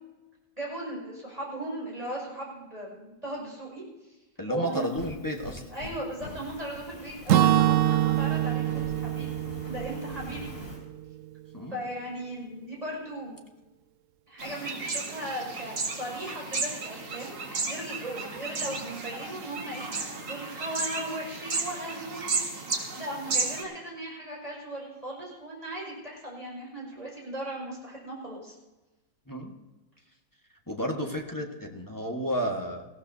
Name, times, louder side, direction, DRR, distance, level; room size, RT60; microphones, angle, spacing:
voice 1, 0.6-3.8 4.5-4.9 5.7-9.4 9.7-10.5 11.7-13.4 14.3-19.9 20.2-22.4 22.9-28.6, right 1 dB, 20° right, -3 dB, 5.8 m, -37 dB
voice 2, 4.4-5.7 11.5-11.8 29.3-29.5 30.7-32.8, equal, 10° left, 1 dB, 1.2 m, -32 dB
Fire, 4.7-10.8, left 2 dB, 30° left, 3.6 m, -44 dB
Acoustic guitar / Strum, 7.3-11.2, right 13 dB, 80° right, 0.7 m, -25 dB
sound 1, 14.4-23.6, right 3 dB, 45° right, 1.9 m, -33 dB
20.0 x 15.0 x 2.7 m, 1.1 s
omnidirectional pair, 2.0 m